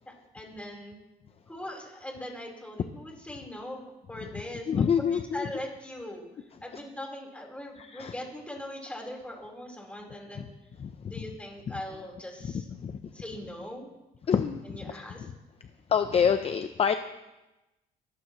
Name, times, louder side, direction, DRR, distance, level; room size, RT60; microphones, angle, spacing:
voice 1, 0.1-1.0 1.5-6.3 6.6-10.5 11.1-12.7 13.1-13.9 14.6-15.3, left 1 dB, 5° left, -1 dB, 4.3 m, -41 dB
voice 2, 4.7-5.5 7.8-8.1 10.4-10.5 10.8-11.1 12.8-13.0 14.3-15.0 15.9-16.9, left 7 dB, 35° left, 9 dB, 0.7 m, -27 dB
22.5 x 14.5 x 3.2 m, 1.0 s
cardioid pair, 110°, 17 cm